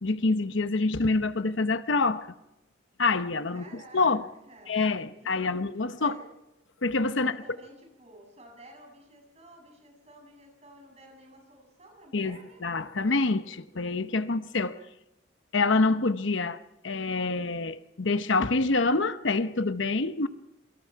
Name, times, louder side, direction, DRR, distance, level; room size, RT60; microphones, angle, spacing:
voice 1, 0.0-2.3 3.0-4.2 4.7-6.2 6.8-7.4 12.1-14.8 15.5-16.6 16.8-20.3, left 3 dB, 75° left, 0.9 m, -26 dB
voice 2, 3.5-4.2 4.5-5.6 6.0-6.3 7.1-12.6, right 1 dB, 35° right, 7.7 m, -52 dB
28.5 x 24.0 x 4.7 m
head